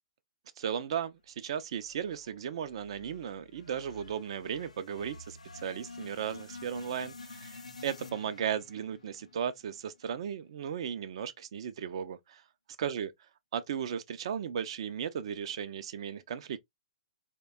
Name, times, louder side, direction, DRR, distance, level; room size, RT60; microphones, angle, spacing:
voice 1, 0.6-12.4 12.8-13.1 13.5-16.6, right 8 dB, 55° right, 0.3 m, -36 dB
sound 1, 1.8-10.1, left 3 dB, 85° left, 0.4 m, -50 dB
2.7 x 2.1 x 2.2 m
figure-of-eight pair, 120°, 3 cm